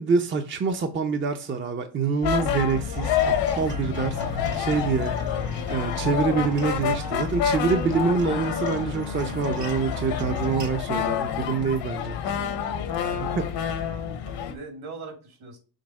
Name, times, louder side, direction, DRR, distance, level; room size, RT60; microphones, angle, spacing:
voice 1, 0.0-5.1 5.7-12.2 13.2-13.4, right 5 dB, 30° right, 0.6 m, -26 dB
sound 1, 2.2-14.5, left 8 dB, 80° left, 1.2 m, -28 dB
Acoustic guitar, 2.7-10.7, right 4 dB, 45° right, 1.1 m, -40 dB
voice 2, 13.1-15.6, right 3 dB, 65° right, 2.7 m, -42 dB
6.5 x 3.5 x 4.7 m
cardioid pair, 130°, 41 cm